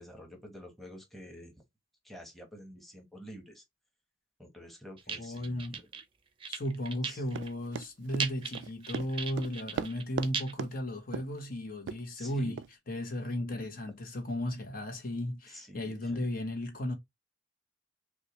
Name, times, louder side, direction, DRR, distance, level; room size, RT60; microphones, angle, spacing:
voice 1, 0.0-1.5 2.0-3.6 4.4-5.9 7.0-7.2 12.2-12.5 13.5-13.7 15.5-16.2, equal, ahead, 1.0 m, -49 dB
sound 1, 5.0-6.0 6.4-7.5 7.8-7.9 8.2-10.5, right 6 dB, 30° right, 0.6 m, -37 dB
voice 2, 5.1-5.7 6.5-12.6 12.9-16.9, equal, 55° left, 0.9 m, -35 dB
Run, 7.3-10.3 10.6-10.7 11.1-11.4 11.9-12.0 12.6-12.7, right 6 dB, 85° right, 0.3 m, -37 dB
5.8 x 2.2 x 3.0 m
head